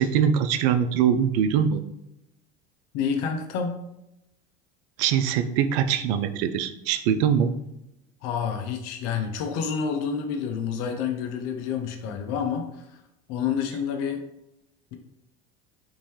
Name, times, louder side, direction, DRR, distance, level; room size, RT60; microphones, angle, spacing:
voice 1, 0.0-1.8 5.0-7.5, right 8 dB, 60° right, 10 dB, 0.5 m, -22 dB
voice 2, 2.9-3.8 8.2-13.0 13.3-14.2, left 6 dB, 55° left, 4 dB, 0.6 m, -28 dB
3.7 x 2.6 x 3.1 m, 0.85 s
hypercardioid pair, 80°, 32 cm